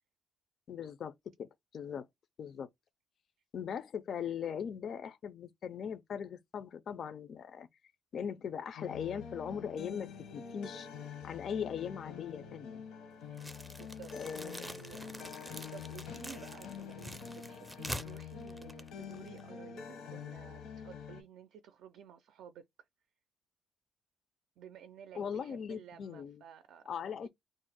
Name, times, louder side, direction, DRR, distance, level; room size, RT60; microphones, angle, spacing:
voice 1, 0.7-1.1 1.4-2.1 2.4-2.7 3.5-7.7 8.1-10.9 11.2-12.8 14.1-14.7 25.1-26.4 26.9-27.3, left 7 dB, 55° left, 0.4 m, -40 dB
sound 1, 8.8-21.2, left 7 dB, 85° left, 0.8 m, -46 dB
voice 2, 13.2-22.6 24.6-26.9 27.2-27.3, right 8 dB, 75° right, 0.4 m, -54 dB
sound 2, 13.4-19.5, equal, 5° right, 0.4 m, -46 dB
2.5 x 2.0 x 3.8 m
cardioid pair, 105°, 0 cm